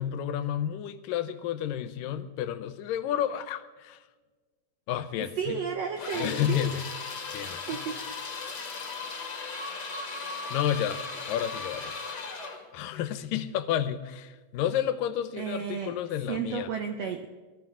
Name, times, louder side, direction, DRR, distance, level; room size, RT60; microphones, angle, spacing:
voice 1, 0.0-4.0 4.9-5.6 6.2-6.8 7.3-7.8 10.5-11.0 11.3-12.0 12.7-16.7, left 10 dB, 80° left, 12 dB, 2.3 m, -31 dB
voice 2, 5.4-6.7 7.7-8.0 15.4-16.0 16.3-17.3, right 7 dB, 80° right, 5 dB, 1.4 m, -32 dB
sound 1, 6.0-12.6, left 4 dB, 35° left, 1.9 m, -37 dB
23.0 x 13.0 x 3.7 m, 1.3 s
omnidirectional pair, 4.1 m